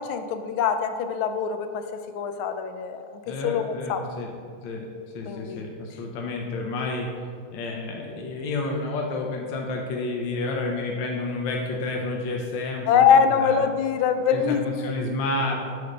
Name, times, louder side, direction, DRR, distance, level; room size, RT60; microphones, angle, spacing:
voice 1, 0.0-4.0 5.3-5.7 12.9-14.9, left 7 dB, 90° left, 8 dB, 1.4 m, -23 dB
voice 2, 3.3-4.3 4.6-4.8 5.1-7.1 7.5-13.6 14.3-15.7, left 2 dB, 70° left, 0 dB, 1.4 m, -30 dB
6.1 x 5.0 x 5.4 m, 2.2 s
omnidirectional pair, 2.2 m